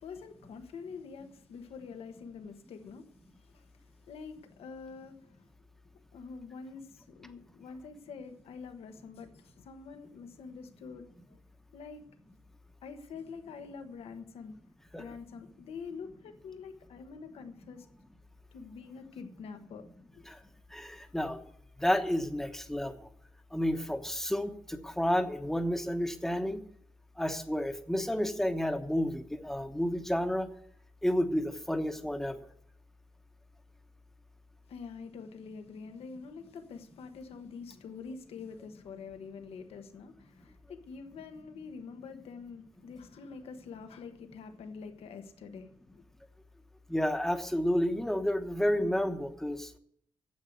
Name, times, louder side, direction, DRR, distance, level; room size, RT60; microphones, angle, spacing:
voice 1, 0.0-3.1 3.4-5.5 6.1-11.4 11.7-12.0 12.8-14.6 14.9-17.9 18.5-20.2 34.7-46.0, left 5 dB, 80° left, 1.3 m, -46 dB
voice 2, 20.7-21.4 21.8-22.9 23.5-26.6 27.2-30.5 31.0-32.4 46.9-49.8, equal, 5° left, 1.0 m, -30 dB
9.4 x 7.9 x 8.0 m
wide cardioid pair, 130°, 10 cm